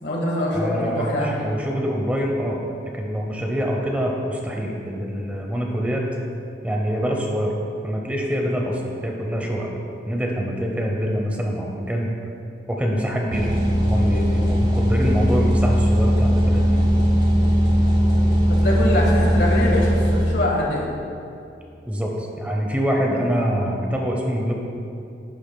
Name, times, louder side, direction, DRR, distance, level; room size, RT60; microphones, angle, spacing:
voice 1, 0.0-1.5 18.5-20.9, left 1 dB, 75° left, -2 dB, 1.6 m, -23 dB
voice 2, 0.5-2.6 2.9-6.1 6.6-7.5 7.8-9.7 10.1-12.1 12.7-13.5 13.8-16.8 21.9-24.5, equal, 10° right, 0 dB, 0.7 m, -25 dB
sound 1, 13.3-20.2, equal, 25° right, 1.1 m, -19 dB
11.0 x 8.4 x 2.2 m, 2.6 s
head